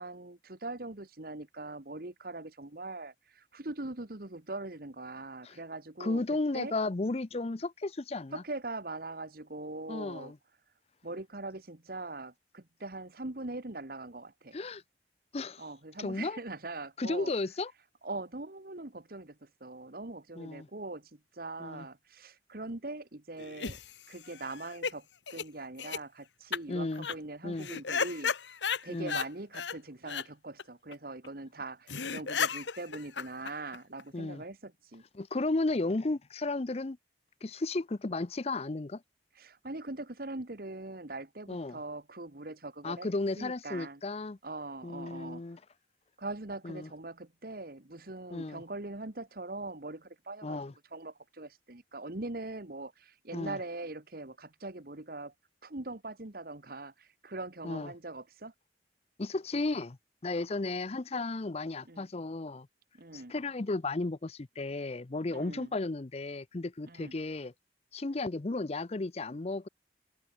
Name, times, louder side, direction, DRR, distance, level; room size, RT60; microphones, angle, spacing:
voice 1, 0.0-6.2 6.5-6.7 8.3-10.3 11.0-14.6 15.6-17.3 18.0-23.8 24.1-28.6 28.8-35.0 39.3-43.1 43.4-44.0 44.4-45.4 46.2-50.6 50.8-55.3 55.6-58.5 61.9-62.1 63.0-63.3 65.3-65.7 66.8-67.1, right 2 dB, 55° right, 1.6 m, -42 dB
voice 2, 6.0-8.4 9.9-10.4 14.5-14.8 15.3-15.6 16.0-16.4 17.0-17.7 20.4-20.7 21.6-21.9 26.7-27.1 27.4-27.7 28.9-29.2 34.1-34.4 35.1-37.0 37.4-39.0 41.5-41.8 42.8-44.4 44.8-45.6 46.6-46.9 48.3-48.6 50.4-50.7 53.3-53.6 57.6-57.9 59.2-60.0 60.2-62.7 63.1-67.5 67.9-69.7, left 2 dB, 35° left, 0.6 m, -34 dB
sound 1, 23.4-24.9 25.3-25.4 25.8-26.0 26.5-26.6 26.9-27.2 27.6-29.3 29.5-29.8 30.1-30.2 30.6-30.7 30.9-31.0 31.2-31.3 31.6-31.7 31.9-34.0, left 6 dB, 90° left, 1.4 m, -34 dB
open air
head